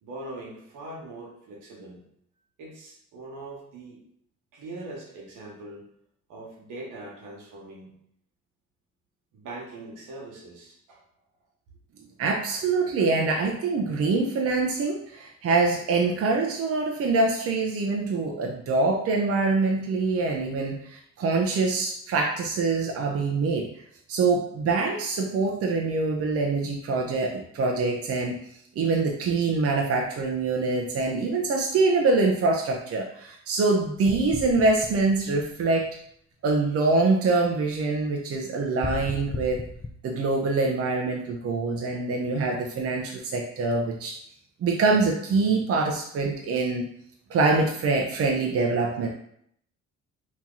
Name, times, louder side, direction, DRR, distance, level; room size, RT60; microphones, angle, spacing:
voice 1, 0.0-2.0 2.6-4.0 4.5-5.9 6.3-7.9 9.3-11.0, right 2 dB, 85° right, -2 dB, 1.2 m, -41 dB
voice 2, 12.2-23.7 24.1-28.4 28.8-35.9 36.4-39.6 40.0-44.2 44.6-46.9 47.3-49.1, right 3 dB, 50° right, 1 dB, 0.6 m, -24 dB
sound 1, 34.0-35.9 38.8-39.9, left 3 dB, 15° left, 0.3 m, -36 dB
2.9 x 2.8 x 3.7 m, 0.68 s
cardioid pair, 90°, 30 cm